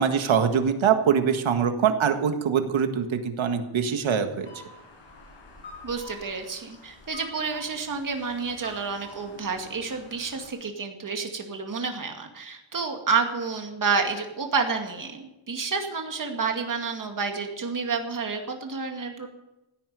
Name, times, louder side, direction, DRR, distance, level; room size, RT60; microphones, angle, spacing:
voice 1, 0.0-4.5, right 7 dB, 70° right, 6 dB, 1.8 m, -23 dB
sound 1, 4.4-10.5, left 2 dB, 65° left, 5.9 m, -47 dB
voice 2, 5.8-19.3, right 5 dB, 40° right, 3 dB, 2.3 m, -29 dB
16.5 x 9.7 x 6.9 m, 0.94 s
wide cardioid pair, 150°, 48 cm